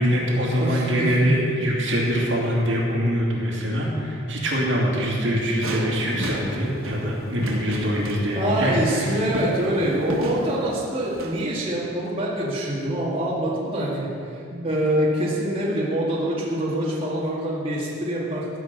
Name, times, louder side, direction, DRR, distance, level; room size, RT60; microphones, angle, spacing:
voice 1, 0.0-9.2 14.5-14.7, equal, 60° right, -3 dB, 2.6 m, -24 dB
voice 2, 0.6-1.3 8.4-18.4, right 1 dB, 25° right, -6 dB, 2.1 m, -25 dB
sound 1, 5.6-11.5, right 1 dB, 85° right, 1.3 m, -33 dB
15.0 x 6.0 x 8.2 m, 2.5 s
head